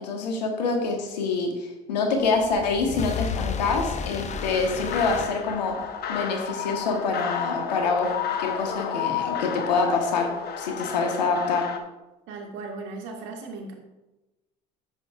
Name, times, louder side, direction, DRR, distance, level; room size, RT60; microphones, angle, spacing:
voice 1, 0.0-5.8 6.1-8.1 8.4-10.3 10.6-11.7, left 4 dB, 85° left, 3 dB, 1.5 m, -26 dB
sound 1, 2.2-6.0, left 6 dB, 35° left, 0.7 m, -33 dB
sound 2, 4.3-11.8, left 8 dB, 50° left, 1.1 m, -32 dB
voice 2, 12.3-13.7, right 3 dB, 65° right, 2 dB, 1.8 m, -37 dB
10.5 x 8.0 x 2.5 m, 1.0 s
hypercardioid pair, 65°, 21 cm